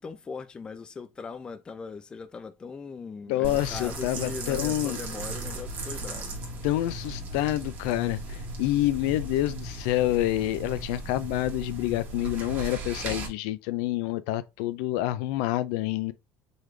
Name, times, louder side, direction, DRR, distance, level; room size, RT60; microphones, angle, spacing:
voice 1, 0.0-6.5, left 5 dB, 15° left, 0.4 m, -40 dB
voice 2, 3.3-5.0 6.6-16.1, left 15 dB, 80° left, 0.4 m, -28 dB
sound 1, 3.4-13.3, right 1 dB, 40° right, 1.3 m, -36 dB
3.9 x 3.1 x 3.2 m
cardioid pair, 155°, 5 cm